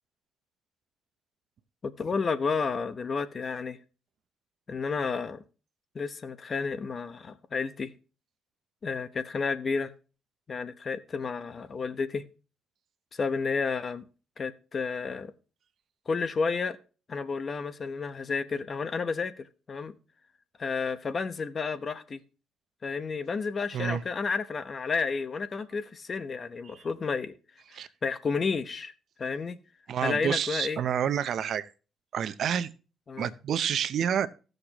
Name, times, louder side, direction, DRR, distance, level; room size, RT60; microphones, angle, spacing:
voice 1, 1.8-3.8 4.7-5.4 5.9-7.9 8.8-9.9 10.5-12.3 13.1-14.0 14.4-15.3 16.1-16.8 17.1-19.9 20.6-22.2 22.8-27.4 28.0-28.9 29.2-29.6 30.0-30.8 33.1-33.3, left 5 dB, 40° left, 0.9 m, -31 dB
voice 2, 29.9-31.7 32.1-32.7 33.2-34.3, right 9 dB, 65° right, 0.6 m, -28 dB
16.0 x 6.6 x 3.0 m
cardioid pair, 90°, 0 cm